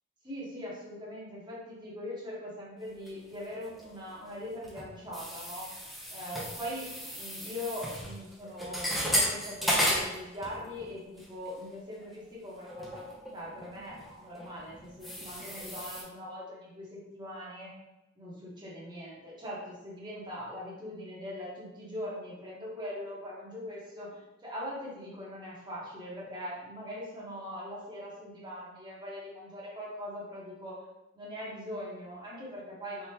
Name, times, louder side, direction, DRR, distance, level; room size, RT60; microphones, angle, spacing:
voice 1, 0.2-5.7 6.1-17.7 18.2-30.8 31.1-33.1, left 1 dB, 20° right, -6 dB, 1.4 m, -41 dB
sound 1, 3.1-4.0 4.3-10.9 11.2-11.5 12.0-12.1 12.6-16.0, equal, ahead, 0.9 m, -34 dB
4.2 x 3.7 x 2.9 m, 0.98 s
head